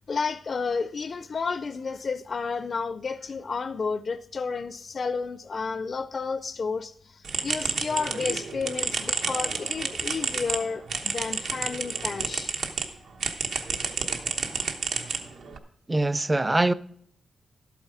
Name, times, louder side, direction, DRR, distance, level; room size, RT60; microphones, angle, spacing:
voice 1, 0.1-12.5, left 4 dB, 50° left, 0.4 m, -31 dB
sound 1, 7.2-12.9 13.2-15.6, right 5 dB, 85° right, 1.1 m, -30 dB
voice 2, 15.9-16.7, right 2 dB, 20° right, 0.4 m, -23 dB
12.0 x 8.3 x 4.9 m
cardioid pair, 95°, 0 cm